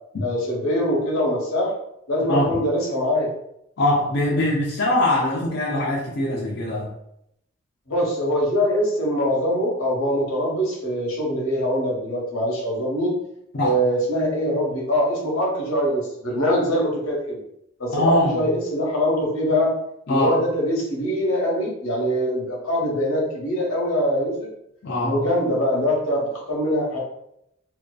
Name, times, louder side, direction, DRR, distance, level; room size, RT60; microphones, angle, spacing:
voice 1, 0.2-1.8 2.1-3.3 7.9-13.2 13.6-17.4 17.8-19.7 20.1-24.5 25.0-27.0, equal, 90° left, -2 dB, 0.8 m, -23 dB
voice 2, 2.3-2.6 3.8-6.9 13.5-13.8 17.9-18.5 20.1-20.4 24.8-25.2, left 1 dB, 55° left, -5 dB, 0.4 m, -22 dB
2.4 x 2.3 x 2.2 m, 0.78 s
head